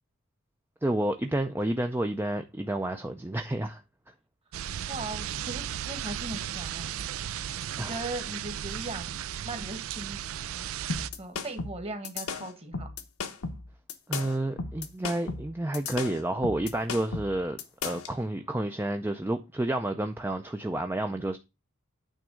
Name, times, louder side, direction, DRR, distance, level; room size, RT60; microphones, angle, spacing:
voice 1, 0.8-3.8 7.8-8.0 14.1-21.4, right 1 dB, 10° right, 0.4 m, -30 dB
sound 1, 4.5-11.1, right 10 dB, 70° right, 0.4 m, -35 dB
voice 2, 4.9-6.9 7.8-9.2 9.4-10.7 11.2-12.9, right 2 dB, 30° right, 1.5 m, -39 dB
sound 2, 10.9-18.1, left 4 dB, 90° left, 1.1 m, -35 dB
9.1 x 3.5 x 6.2 m
head